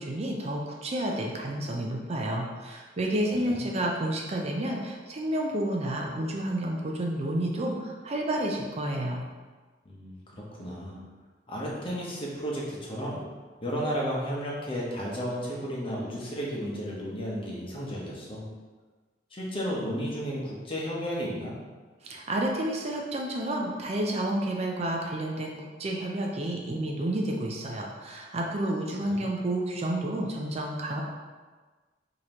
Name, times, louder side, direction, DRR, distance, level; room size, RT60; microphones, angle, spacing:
voice 1, 0.0-9.2 22.0-31.0, right 1 dB, 35° right, 0 dB, 0.5 m, -30 dB
voice 2, 9.8-11.0 11.5-13.2 13.6-18.4 19.3-21.5 29.0-29.2, equal, 30° left, -4 dB, 0.9 m, -33 dB
5.1 x 2.9 x 2.9 m, 1.3 s
head